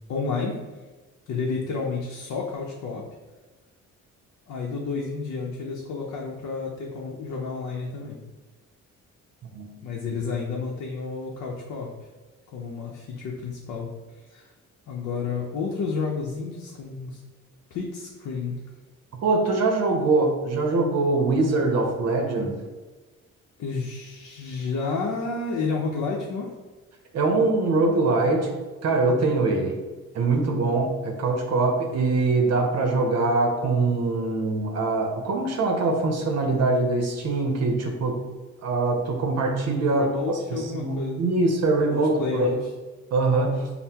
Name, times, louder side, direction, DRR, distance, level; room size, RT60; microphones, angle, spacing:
voice 1, 0.1-0.6 1.3-3.0 4.5-8.2 9.8-11.9 12.5-13.9 14.3-14.5 14.9-17.2 17.7-18.6 23.6-26.5 39.9-41.4 41.9-42.7, left 4 dB, 70° left, -2 dB, 0.7 m, -30 dB
voice 2, 19.2-22.6 27.1-28.5 28.8-29.8 30.1-38.2 38.6-42.5 43.1-43.6, right 3 dB, 60° right, 2 dB, 0.7 m, -23 dB
5.4 x 2.1 x 2.8 m, 1.2 s
cardioid pair, 90°, 30 cm